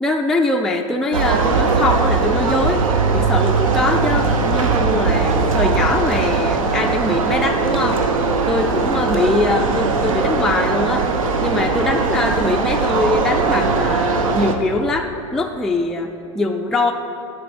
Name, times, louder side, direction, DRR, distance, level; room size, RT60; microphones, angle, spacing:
voice 1, 0.0-2.8 3.1-8.0 8.5-11.1 11.4-16.9, left 2 dB, 5° left, 2 dB, 0.3 m, -22 dB
sound 1, 1.1-14.6, right 4 dB, 85° right, 0.8 m, -19 dB
7.6 x 4.5 x 6.9 m, 2.8 s
hypercardioid pair, 110°, 17 cm